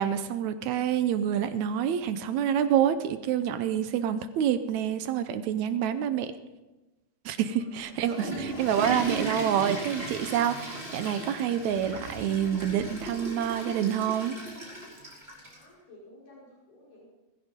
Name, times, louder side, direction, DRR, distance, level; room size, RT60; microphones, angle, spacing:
voice 1, 0.0-6.3 7.3-14.4, right 9 dB, 75° right, 11 dB, 1.8 m, -27 dB
voice 2, 7.5-8.3 15.4-17.1, left 1 dB, 70° left, -6 dB, 6.8 m, -55 dB
Water / Toilet flush, 7.8-15.6, right 2 dB, 15° right, 6.2 m, -36 dB
21.5 x 14.5 x 3.7 m, 1.1 s
omnidirectional pair, 3.8 m